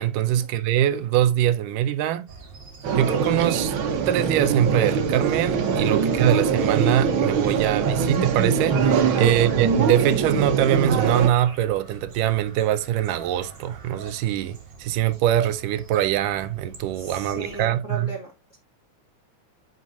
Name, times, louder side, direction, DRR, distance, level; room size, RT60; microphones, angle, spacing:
voice 1, 0.0-2.3 2.9-3.7 4.1-18.1, right 11 dB, 85° right, 2.3 m, -23 dB
sound 1, 2.3-17.7, right 5 dB, 40° right, 2.2 m, -44 dB
sound 2, 2.8-11.3, right 5 dB, 70° right, 1.2 m, -23 dB
voice 2, 9.1-9.4 17.0-18.6, right 2 dB, 30° left, 1.8 m, -37 dB
9.4 x 5.3 x 2.6 m
omnidirectional pair, 3.7 m